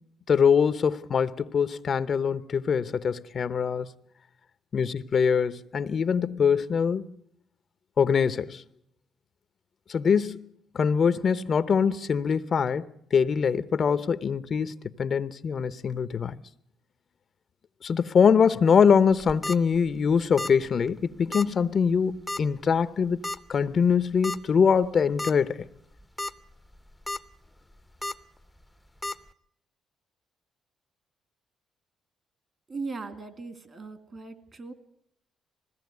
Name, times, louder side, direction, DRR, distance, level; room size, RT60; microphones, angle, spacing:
voice 1, 0.3-3.9 4.7-7.1 8.0-8.6 9.9-10.5 10.7-16.4 17.8-23.2 23.5-25.6, left 6 dB, 50° left, 0.8 m, -23 dB
sound 1, 19.1-19.6 20.4-20.6 20.9-21.0 21.3-21.5 22.3-22.6 23.2-23.4 24.2-24.4 24.8-24.9 25.2-25.3 26.0-26.3 26.7-27.2 28.0-28.1 29.0-29.1, left 2 dB, 5° left, 0.8 m, -32 dB
voice 2, 32.7-34.7, right 4 dB, 40° right, 2.5 m, -38 dB
20.5 x 16.5 x 9.4 m
cardioid pair, 90°, 0 cm